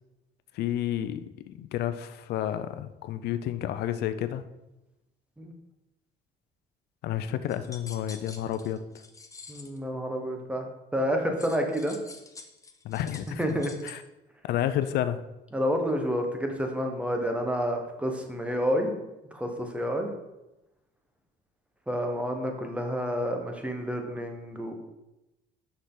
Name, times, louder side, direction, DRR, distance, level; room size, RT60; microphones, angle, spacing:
voice 1, 0.5-4.4 7.0-8.8 12.8-13.6 13.8-14.0 14.4-15.2, left 11 dB, 75° left, 11 dB, 0.5 m, -30 dB
sound 1, 7.5-9.8 11.4-13.9, left 4 dB, 20° left, 0.8 m, -47 dB
voice 2, 9.5-10.6 10.9-12.0 13.4-13.7 15.5-18.9 19.3-20.1 21.9-24.7, equal, 5° right, 3 dB, 1.1 m, -29 dB
6.4 x 5.9 x 3.8 m, 0.97 s
cardioid pair, 110°, 17 cm